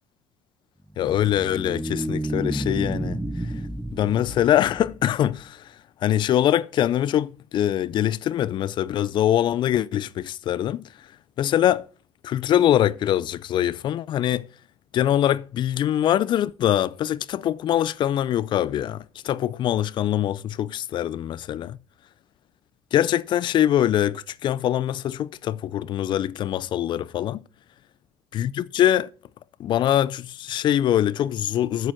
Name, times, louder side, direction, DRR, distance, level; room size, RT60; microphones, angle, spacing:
sound 1, 0.9-5.4, right 1 dB, 5° right, 0.8 m, -31 dB
voice 1, 1.0-3.5 3.9-5.7 6.0-10.9 11.4-11.9 12.2-14.5 14.9-21.8 22.9-27.4 28.3-29.1 29.6-31.9, left 11 dB, 55° left, 0.5 m, -23 dB
7.7 x 7.4 x 6.2 m
supercardioid pair, 75°, 10 cm